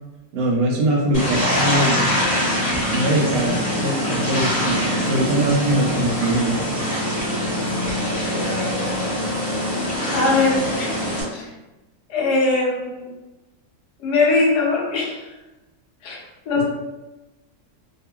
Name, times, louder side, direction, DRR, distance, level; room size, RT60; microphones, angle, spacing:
voice 1, 0.3-2.0 2.9-6.7, right 1 dB, 70° right, -2 dB, 1.0 m, -22 dB
sound 1, 1.1-11.2, equal, 35° left, 0.9 m, -23 dB
voice 2, 8.8-9.1 10.1-11.0 11.3-11.5 12.1-13.1 14.0-15.3 16.0-16.6, left 3 dB, 80° left, -2 dB, 1.2 m, -21 dB
2.9 x 2.4 x 2.2 m, 1.1 s
omnidirectional pair, 1.7 m